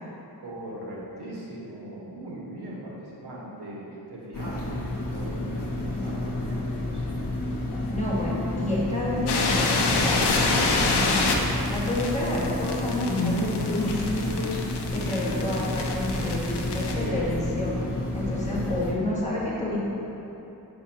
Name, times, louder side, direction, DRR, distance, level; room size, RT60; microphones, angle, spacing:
voice 1, 0.0-7.1, right 1 dB, 85° right, -4 dB, 1.2 m, -40 dB
sound 1, 4.3-18.9, left 1 dB, 55° left, 0.8 m, -30 dB
voice 2, 7.9-11.3 11.7-14.5 14.9-17.7 18.1-19.8, left 1 dB, 20° left, -7 dB, 1.4 m, -29 dB
sound 2, 9.3-16.9, left 3 dB, 85° left, 0.7 m, -27 dB
6.8 x 6.0 x 2.8 m, 3.0 s
wide cardioid pair, 95°, 39 cm